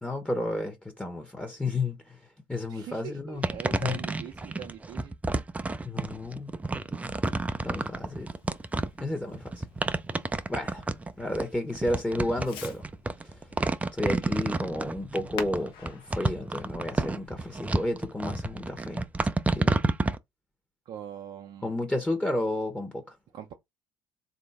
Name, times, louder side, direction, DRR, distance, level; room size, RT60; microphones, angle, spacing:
voice 1, 0.0-2.2 2.5-3.4 3.7-4.0 5.8-6.5 7.6-8.3 9.0-9.6 10.5-10.8 11.2-12.8 13.2-13.4 13.9-19.0 19.5-19.8 21.6-23.2, left 2 dB, 10° left, 1.1 m, -32 dB
voice 2, 2.7-5.1 20.9-21.8 23.3-23.5, right 10 dB, 55° right, 0.6 m, -42 dB
sound 1, 3.4-20.2, right 2 dB, 15° right, 0.5 m, -30 dB
Fireworks, 6.6-18.0, left 5 dB, 65° left, 1.0 m, -49 dB
3.8 x 2.6 x 3.5 m
hypercardioid pair, 65°, 9 cm